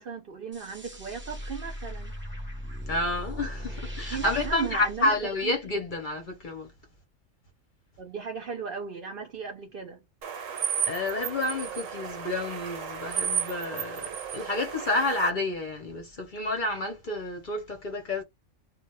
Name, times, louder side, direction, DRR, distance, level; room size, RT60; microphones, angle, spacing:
voice 1, 0.0-2.1 4.1-5.1 5.4-5.5 8.0-10.0, right 6 dB, 60° right, 0.6 m, -36 dB
sound 1, 0.5-5.9, equal, 15° right, 0.5 m, -39 dB
voice 2, 2.9-6.7 10.9-18.2, left 2 dB, 50° left, 0.7 m, -30 dB
sound 2, 10.2-15.3, right 8 dB, 85° right, 1.0 m, -33 dB
2.1 x 2.0 x 3.0 m
omnidirectional pair, 1.3 m